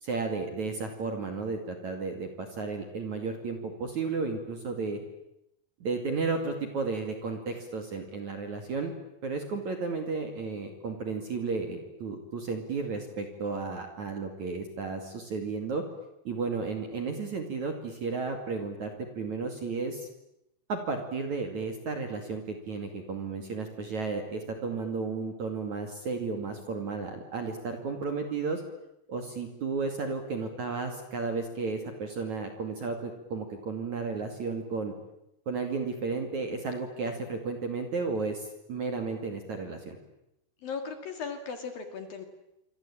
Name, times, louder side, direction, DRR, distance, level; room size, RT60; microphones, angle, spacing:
voice 1, 0.0-5.0 5.8-8.9 9.2-15.8 16.2-20.1 20.7-28.6 29.1-34.9 35.5-40.0, right 4 dB, 45° right, 5 dB, 2.9 m, -33 dB
voice 2, 40.6-42.2, left 5 dB, 55° left, 7 dB, 3.4 m, -37 dB
27.0 x 25.5 x 8.6 m, 0.84 s
omnidirectional pair, 5.9 m